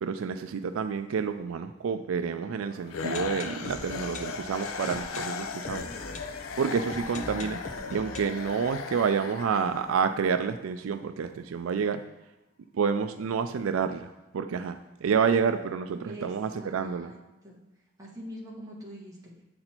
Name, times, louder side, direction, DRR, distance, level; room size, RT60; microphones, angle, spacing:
voice 1, 0.0-5.9 6.6-7.6 7.9-12.0 12.7-17.1, right 6 dB, 85° right, 9 dB, 0.4 m, -29 dB
sound 1, 2.7-10.4 10.7-10.8 11.0-11.1 11.6-11.7, left 2 dB, 35° left, 0.7 m, -43 dB
sound 2, 2.9-10.1, left 5 dB, 85° left, 0.5 m, -37 dB
voice 2, 16.6-17.2 17.4-17.6 18.0-19.3, equal, 15° right, -5 dB, 1.5 m, -43 dB
7.7 x 4.2 x 4.3 m, 1.0 s
head